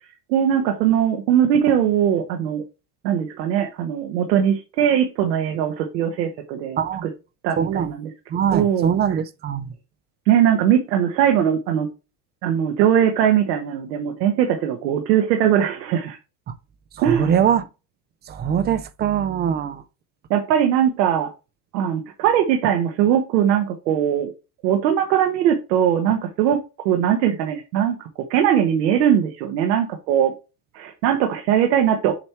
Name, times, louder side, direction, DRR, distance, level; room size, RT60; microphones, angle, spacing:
voice 1, 0.3-2.6 3.0-7.1 7.4-8.1 8.5-8.9 10.3-11.9 12.4-16.2 17.0-17.3 20.3-21.3 21.7-24.3 24.6-26.6 26.8-27.9 28.3-30.3 30.7-32.1, right 9 dB, 90° right, 1.3 m, -20 dB
voice 2, 7.6-7.9 8.3-9.7 16.5-16.6 17.0-17.7 18.3-19.8, right 8 dB, 25° right, 0.4 m, -22 dB
7.4 x 3.0 x 4.5 m
supercardioid pair, 130°, 48 cm